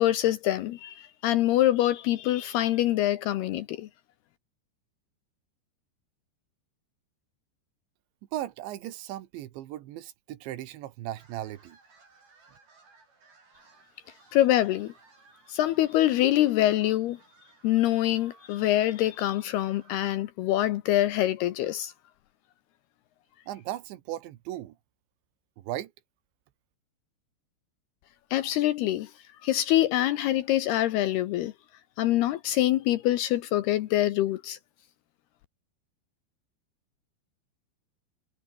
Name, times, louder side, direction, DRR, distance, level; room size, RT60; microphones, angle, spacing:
voice 1, 0.0-3.9 14.3-14.9 15.5-17.2 17.6-21.9 28.3-29.1 29.4-31.5 32.0-34.6, left 14 dB, 75° left, 2.5 m, -25 dB
voice 2, 8.3-11.8 23.5-24.8 25.6-25.9, right 13 dB, 75° right, 3.6 m, -37 dB
sound 1, 11.1-20.1, right 4 dB, 50° right, 9.9 m, -59 dB
omnidirectional pair, 5.5 m